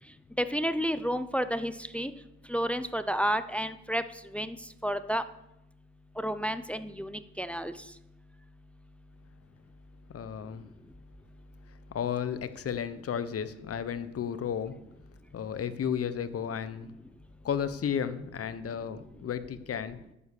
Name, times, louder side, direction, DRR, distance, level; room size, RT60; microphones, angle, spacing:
voice 1, 0.4-2.1 2.5-4.0 4.3-4.6 4.8-5.2 6.2-7.7, equal, 5° left, 12 dB, 0.6 m, -30 dB
voice 2, 10.1-10.6 11.9-14.8 15.3-16.9 17.4-20.0, left 8 dB, 50° left, 12 dB, 1.0 m, -33 dB
10.0 x 7.4 x 6.6 m, 0.86 s
cardioid pair, 90°, 30 cm